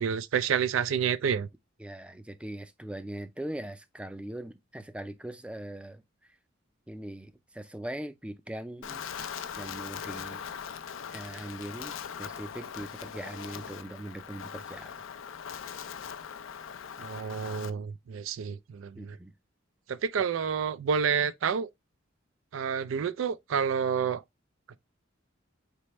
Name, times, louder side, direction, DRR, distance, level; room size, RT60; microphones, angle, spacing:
voice 1, 0.0-1.5 17.0-19.2 19.9-21.7 22.5-24.2, right 7 dB, 90° right, 0.4 m, -29 dB
voice 2, 1.8-6.4 6.9-9.0 9.6-10.4 11.1-15.0 18.9-19.3, right 1 dB, 5° right, 0.4 m, -41 dB
Wind, 8.8-17.7, left 7 dB, 90° left, 0.5 m, -40 dB
4.2 x 3.4 x 3.0 m
head